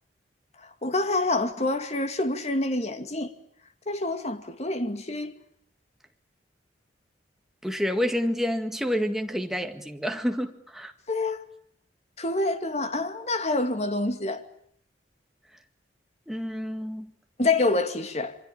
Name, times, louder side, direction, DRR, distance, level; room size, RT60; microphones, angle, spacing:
voice 1, 0.8-3.3 3.9-5.3 11.1-11.4 12.2-14.4 17.4-18.4, left 2 dB, 35° left, 2.4 m, -27 dB
voice 2, 7.6-10.9 16.3-17.1, equal, ahead, 2.0 m, -28 dB
27.5 x 24.5 x 8.8 m
head